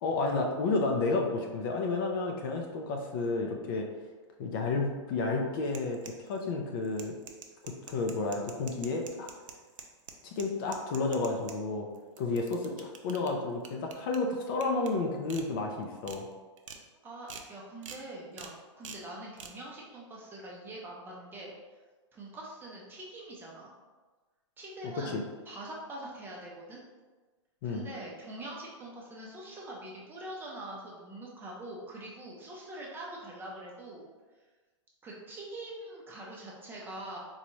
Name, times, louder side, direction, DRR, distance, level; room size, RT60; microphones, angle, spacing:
voice 1, 0.0-3.9 4.4-7.1 7.6-9.3 10.2-11.9 12.2-16.3 25.1-25.2 27.6-27.9, left 3 dB, 45° left, 2 dB, 0.5 m, -31 dB
sound 1, 5.7-6.4 6.8-11.6 12.0-13.3 13.6-14.2 14.6-14.9 15.3-15.4 15.8-16.2 16.6-16.8 17.3-17.5 17.8-18.0 18.4-18.5 18.8-19.0 19.4-19.5, right 6 dB, 90° right, 0.5 m, -45 dB
voice 2, 17.0-21.5 22.1-23.7 24.6-25.2 25.5-26.8 27.6-34.1 35.0-37.2, right 1 dB, 15° right, -4 dB, 0.6 m, -44 dB
4.0 x 2.3 x 3.0 m, 1.3 s
hypercardioid pair, 140°, 16 cm